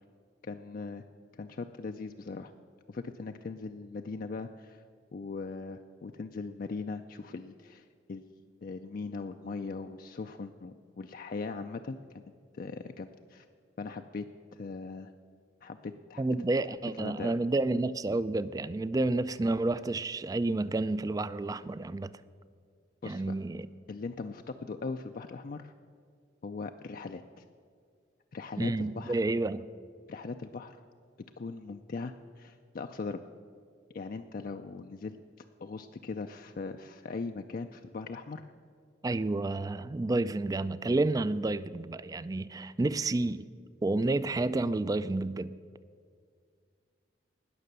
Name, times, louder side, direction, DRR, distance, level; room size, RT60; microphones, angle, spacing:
voice 1, 0.4-1.0 1.4-2.5 2.9-4.8 5.1-8.2 8.6-13.5 13.8-15.1 15.6-16.2 17.0-17.3 23.0-23.3 23.9-25.7 26.4-27.4 28.3-29.2 30.1-30.8 31.4-33.2 33.9-35.2 35.6-38.4, left 4 dB, 50° left, 6 dB, 0.4 m, -40 dB
voice 2, 16.2-22.1 23.0-23.7 28.6-29.7 39.0-43.5 43.8-45.5, right 2 dB, 20° right, 16 dB, 0.3 m, -30 dB
19.0 x 6.7 x 6.7 m, 2.1 s
head